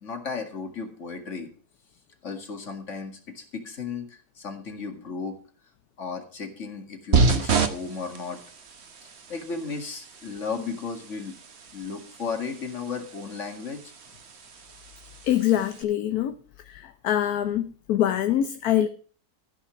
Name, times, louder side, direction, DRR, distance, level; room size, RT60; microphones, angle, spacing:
voice 1, 0.0-1.5 2.2-5.4 6.0-8.4 9.0-11.3 11.7-13.8, left 5 dB, 50° left, 2.3 m, -35 dB
sound 1, 7.1-15.8, right 4 dB, 45° right, 1.3 m, -30 dB
voice 2, 15.2-16.3 16.7-18.9, left 11 dB, 75° left, 1.2 m, -24 dB
14.5 x 5.7 x 7.0 m
omnidirectional pair, 1.7 m